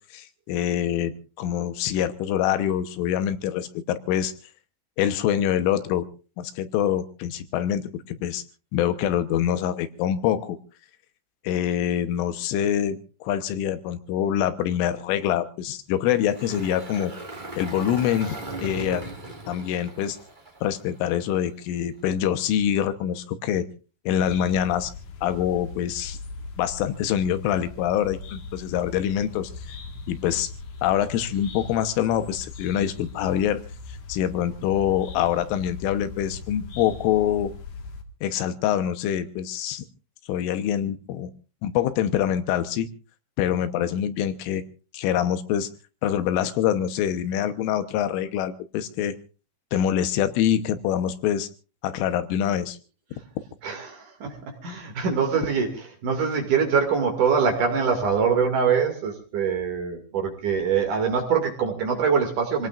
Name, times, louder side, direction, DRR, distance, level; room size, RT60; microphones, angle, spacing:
voice 1, 0.1-4.3 5.0-6.1 6.4-8.4 8.7-10.6 11.5-17.1 17.6-19.0 19.5-20.2 20.6-23.7 24.1-24.9 25.2-26.2 26.6-29.8 30.1-30.5 30.8-33.6 34.1-37.5 38.2-39.9 40.3-41.3 41.6-42.9 43.4-44.6 44.9-45.7 46.0-49.2 49.7-51.5 51.8-52.8, left 10 dB, 85° left, 11 dB, 3.6 m, -25 dB
Engine, 16.1-21.3, right 2 dB, 75° right, 0.4 m, -38 dB
sound 1, 24.2-38.0, left 4 dB, 55° left, 2.3 m, -40 dB
voice 2, 53.6-54.4 54.6-55.7 56.0-62.7, right 6 dB, 50° right, 4 dB, 3.2 m, -23 dB
27.5 x 18.5 x 2.5 m, 0.34 s
omnidirectional pair, 5.5 m